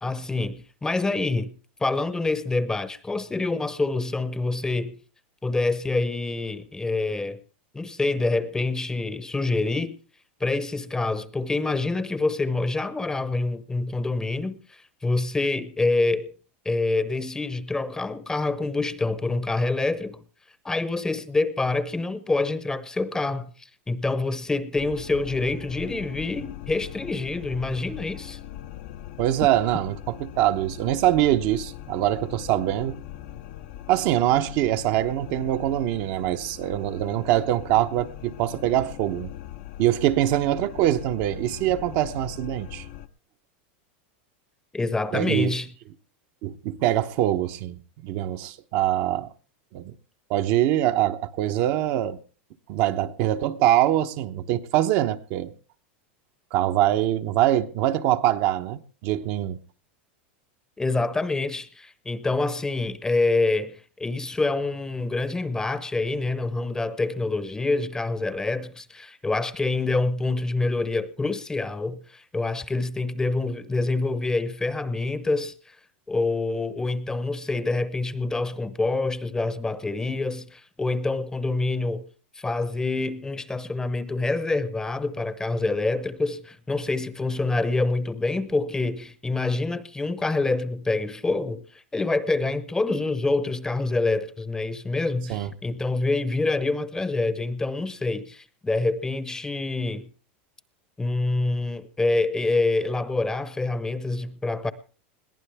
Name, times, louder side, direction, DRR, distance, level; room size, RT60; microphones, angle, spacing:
voice 1, 0.0-1.5 1.8-5.0 5.4-7.4 7.7-10.0 10.4-16.3 16.6-20.2 20.6-23.5 23.9-28.4 44.7-45.7 60.8-75.5 76.1-82.1 82.4-91.6 91.9-100.1 101.0-104.7, left 3 dB, 10° left, 0.9 m, -26 dB
sound 1, 24.8-43.1, left 12 dB, 60° left, 0.8 m, -41 dB
voice 2, 29.2-33.0 33.9-39.3 39.8-42.8 45.1-45.5 46.4-47.7 48.0-49.3 49.7-49.9 50.3-52.2 52.7-55.5 56.5-59.6 95.3-95.5, right 13 dB, 55° right, 0.9 m, -23 dB
21.5 x 15.0 x 3.5 m
supercardioid pair, 125°, 6 cm